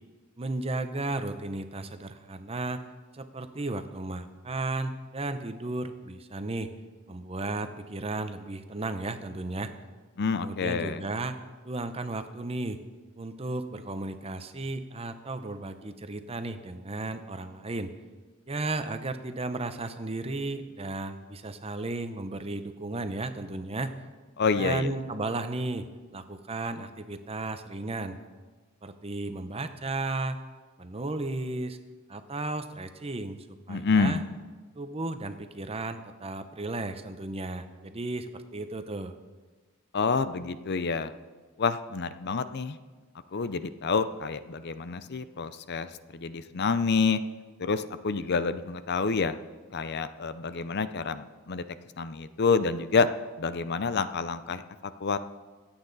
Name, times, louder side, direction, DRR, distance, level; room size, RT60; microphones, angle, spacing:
voice 1, 0.4-2.8 3.1-6.7 7.1-9.7 10.4-11.4 11.6-12.8 13.2-17.9 18.5-23.9 24.6-25.9 26.1-28.2 28.8-30.4 30.8-31.8 32.1-33.4 33.7-34.2 34.7-39.1, right 2 dB, 25° right, 9 dB, 0.8 m, -34 dB
voice 2, 10.2-11.0 24.4-24.9 33.7-34.2 39.9-41.1 41.6-42.8 43.3-47.2 47.6-49.3 49.7-51.6 52.0-53.1 53.4-55.2, left 4 dB, 50° left, 12 dB, 0.6 m, -28 dB
25.0 x 8.8 x 4.0 m, 1.3 s
head